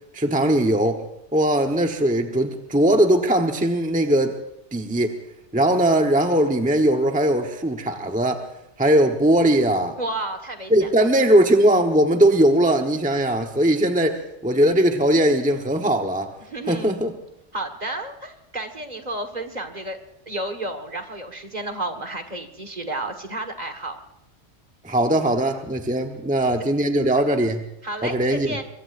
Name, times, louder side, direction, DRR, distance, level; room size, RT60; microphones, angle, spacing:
voice 1, 0.1-1.1 1.3-4.4 4.7-5.1 5.5-8.4 8.8-10.0 10.7-16.3 16.7-17.1 24.8-27.7 28.0-28.6, right 1 dB, 5° right, 3 dB, 1.0 m, -20 dB
voice 2, 10.0-11.1 16.5-17.1 17.5-20.0 20.3-24.0 27.8-28.6, right 1 dB, 35° right, 6 dB, 1.6 m, -31 dB
24.0 x 23.0 x 2.6 m, 0.83 s
omnidirectional pair, 1.2 m